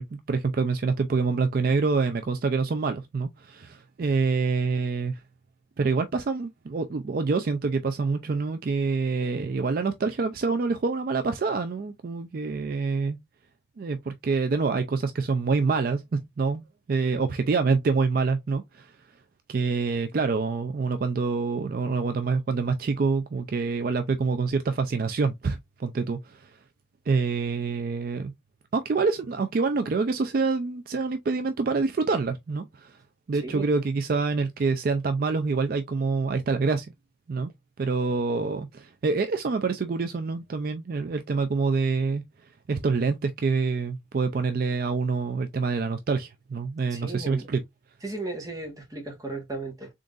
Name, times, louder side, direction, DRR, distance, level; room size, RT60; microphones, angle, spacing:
voice 1, 0.0-5.2 5.8-13.2 13.8-16.6 16.9-19.0 19.5-26.6 27.1-28.3 28.7-33.0 33.3-36.9 37.3-37.5 37.8-47.6, right 4 dB, 50° right, 0.4 m, -26 dB
voice 2, 46.9-47.5 48.0-49.9, right 2 dB, 20° right, 1.4 m, -35 dB
3.8 x 3.6 x 2.4 m
head